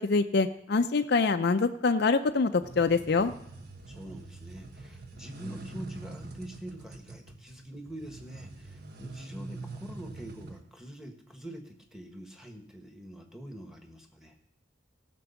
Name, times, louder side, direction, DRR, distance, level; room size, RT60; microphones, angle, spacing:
voice 1, 0.0-3.3, left 4 dB, 55° left, 7 dB, 0.5 m, -25 dB
sound 1, 2.6-10.6, right 3 dB, 55° right, 1.1 m, -45 dB
voice 2, 3.9-14.4, equal, ahead, 3 dB, 1.3 m, -45 dB
16.0 x 6.1 x 7.0 m, 0.78 s
head